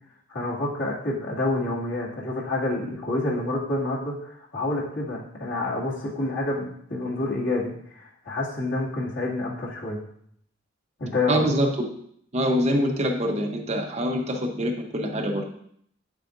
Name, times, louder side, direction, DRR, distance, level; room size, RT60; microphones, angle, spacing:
voice 1, 0.3-10.0 11.0-11.4, left 2 dB, 80° left, -6 dB, 2.4 m, -28 dB
voice 2, 11.3-11.9 12.3-15.5, equal, 35° right, 2 dB, 0.9 m, -25 dB
8.4 x 7.5 x 2.6 m, 0.68 s
head